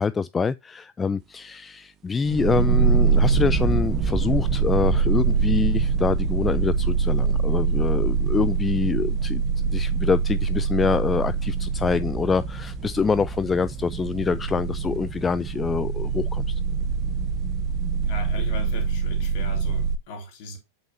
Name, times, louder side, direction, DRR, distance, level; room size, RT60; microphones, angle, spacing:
voice 1, 0.0-16.5, left 5 dB, 15° left, 0.3 m, -25 dB
sound 1, 2.2-20.0, right 5 dB, 30° right, 0.9 m, -24 dB
voice 2, 18.0-20.6, left 2 dB, 45° left, 2.4 m, -38 dB
8.3 x 5.7 x 2.7 m
figure-of-eight pair, 90°, 0 cm